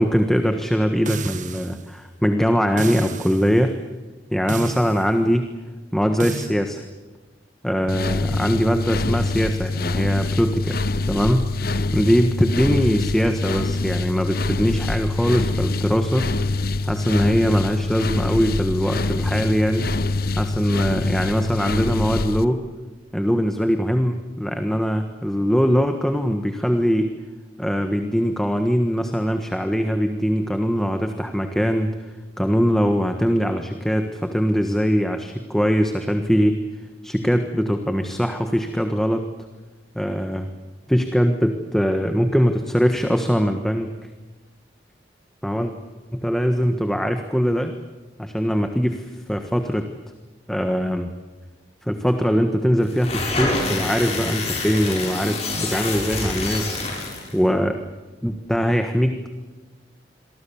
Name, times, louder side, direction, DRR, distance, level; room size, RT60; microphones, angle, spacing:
voice 1, 0.0-3.8 4.3-5.5 5.9-6.8 7.6-10.8 11.1-11.5 11.9-16.3 16.8-19.9 20.4-22.6 23.1-27.1 27.6-31.9 32.4-36.6 37.0-39.3 39.9-40.5 40.9-43.9 45.4-45.7 46.1-47.7 48.2-49.9 50.5-51.1 51.9-56.8 57.3-57.8 58.2-59.3, equal, ahead, 6 dB, 1.5 m, -21 dB
sound 1, 1.1-1.8 2.8-3.5 4.5-5.1 6.2-6.5, right 3 dB, 45° right, 1.5 m, -31 dB
sound 2, 7.9-22.4, left 2 dB, 55° left, 1.0 m, -25 dB
sound 3, 52.9-57.3, left 2 dB, 35° left, 7.7 m, -26 dB
28.0 x 24.0 x 7.2 m, 1.3 s
head